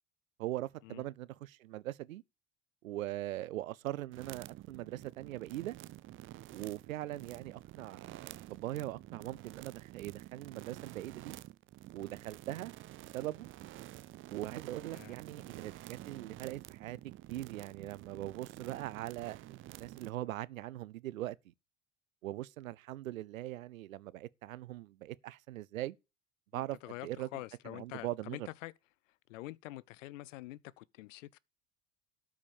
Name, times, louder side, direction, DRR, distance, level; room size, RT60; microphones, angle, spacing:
voice 1, 0.4-2.2 2.8-5.8 6.5-11.4 11.9-12.7 13.1-13.5 14.3-17.0 17.3-21.4 22.2-26.0 26.5-27.3 27.7-28.5, right 15 dB, 80° right, 0.6 m, -41 dB
sound 1, 4.1-20.1, right 15 dB, 30° right, 0.5 m, -50 dB
voice 2, 14.8-15.1 26.5-28.7 29.3-31.4, left 17 dB, 65° left, 0.6 m, -46 dB
12.5 x 4.8 x 7.1 m
figure-of-eight pair, 70°, 40 cm